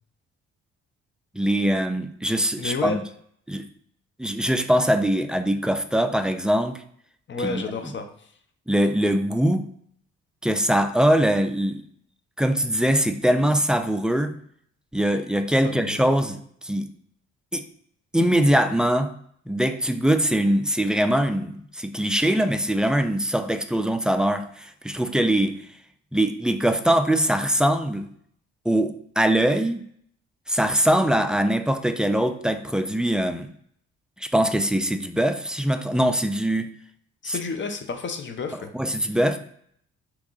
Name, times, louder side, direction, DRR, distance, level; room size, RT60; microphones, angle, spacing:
voice 1, 1.3-3.0 3.5-3.7 4.2-6.8 7.4-7.6 8.7-9.7 10.4-11.8 12.4-14.3 14.9-16.9 17.5-17.6 18.1-19.1 19.5-25.6 26.1-28.1 28.7-29.9 30.5-33.5 34.2-36.7 37.3-37.4 38.7-39.4, right 1 dB, 5° right, 8 dB, 0.3 m, -22 dB
voice 2, 2.6-3.0 7.3-8.3 15.6-16.1 37.2-38.7 39.1-39.2, left 4 dB, 40° left, 6 dB, 0.7 m, -31 dB
3.6 x 3.0 x 3.8 m, 0.65 s
cardioid pair, 90°, 30 cm